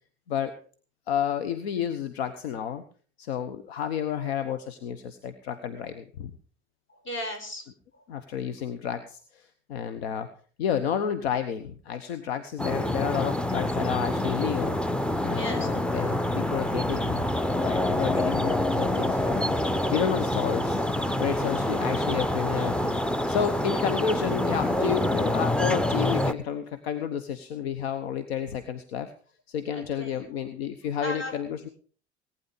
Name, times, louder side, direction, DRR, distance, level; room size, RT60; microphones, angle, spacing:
voice 1, 1.1-2.8 3.2-6.3 8.1-10.3 10.6-14.8 15.2-17.2 17.6-19.5 19.9-20.8 21.2-29.1 29.5-31.7, left 8 dB, 70° left, 10 dB, 1.1 m, -31 dB
voice 2, 7.0-7.6 15.3-15.7 29.7-30.3 31.0-31.3, left 1 dB, 35° left, 4 dB, 5.5 m, -35 dB
sound 1, 12.6-26.3, left 1 dB, 5° left, 0.7 m, -26 dB
18.5 x 9.7 x 5.2 m, 0.42 s
figure-of-eight pair, 65°, 33 cm